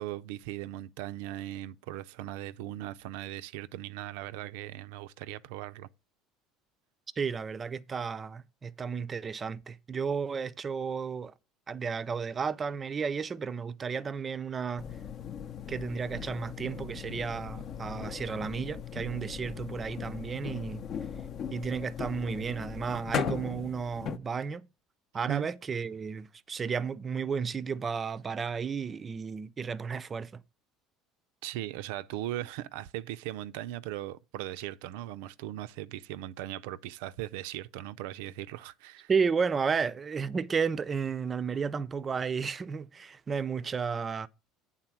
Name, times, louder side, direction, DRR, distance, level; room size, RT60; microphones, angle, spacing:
voice 1, 0.0-5.9 25.3-25.5 31.4-39.1, right 14 dB, 85° right, 0.4 m, -38 dB
voice 2, 7.2-11.3 11.7-14.9 15.7-20.8 21.5-24.6 25.1-30.4 39.1-44.3, right 6 dB, 25° right, 0.4 m, -33 dB
sound 1, 14.8-24.2, left 8 dB, 40° left, 0.6 m, -38 dB
8.9 x 3.8 x 5.9 m
cardioid pair, 140°, 0 cm